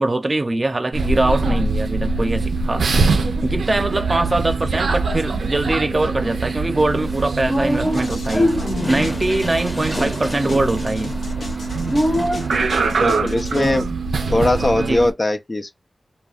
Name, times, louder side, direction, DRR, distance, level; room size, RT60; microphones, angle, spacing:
voice 1, 0.0-2.9 3.4-8.5 8.9-11.1 13.5-13.8 14.9-15.0, right 2 dB, 40° right, 0.6 m, -22 dB
sound 1, 0.9-15.1, right 3 dB, 85° right, 0.4 m, -23 dB
sound 2, 6.9-12.7, left 1 dB, 20° left, 0.8 m, -25 dB
sound 3, 7.9-13.8, left 2 dB, 80° left, 0.7 m, -37 dB
voice 2, 13.0-13.8 14.3-15.7, left 2 dB, 40° left, 0.4 m, -20 dB
2.3 x 2.2 x 3.4 m
cardioid pair, 40°, 0 cm